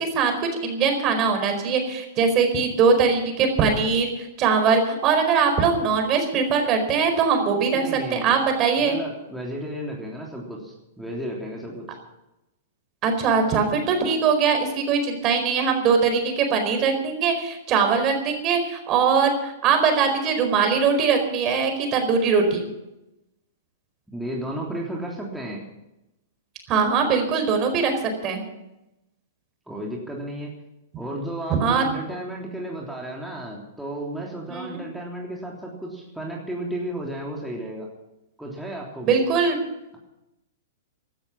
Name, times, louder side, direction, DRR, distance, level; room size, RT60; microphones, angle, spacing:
voice 1, 0.0-4.1 4.4-7.8 8.1-9.0 13.0-22.7 26.7-27.9 28.2-28.4 31.5-31.8 34.5-34.8 39.0-39.6, right 5 dB, 35° right, 5 dB, 4.5 m, -21 dB
voice 2, 7.7-8.3 8.9-11.9 24.1-25.6 29.7-30.5 30.9-37.9 38.4-39.1, right 1 dB, ahead, -3 dB, 3.3 m, -33 dB
16.0 x 13.0 x 6.0 m, 0.92 s
hypercardioid pair, 115°, 0 cm